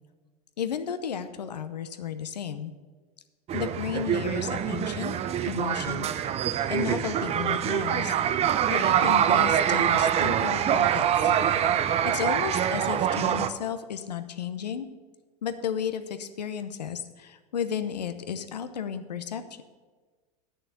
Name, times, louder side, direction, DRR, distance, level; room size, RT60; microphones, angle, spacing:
voice 1, 0.6-2.7 3.5-5.2 5.4-6.1 6.7-8.2 8.7-11.3 12.0-14.9 15.4-19.6, left 8 dB, 85° left, 10 dB, 0.8 m, -33 dB
sound 1, 3.5-13.5, right 9 dB, 30° right, 0.6 m, -25 dB
8.9 x 6.4 x 8.1 m, 1.4 s
hypercardioid pair, 90°, 21 cm